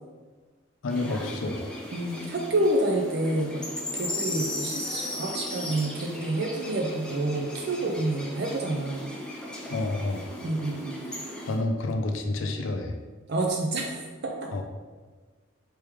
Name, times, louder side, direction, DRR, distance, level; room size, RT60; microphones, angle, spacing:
voice 1, 0.8-1.7 9.7-10.3 11.5-13.0 14.5-14.6, left 2 dB, 75° left, 5 dB, 0.5 m, -29 dB
sound 1, 0.9-11.6, left 1 dB, 5° left, 0.6 m, -37 dB
voice 2, 1.9-3.6 3.9-9.1 10.4-11.0 13.3-14.5, right 1 dB, 55° right, 1 dB, 0.5 m, -28 dB
4.5 x 3.2 x 3.4 m, 1.4 s
head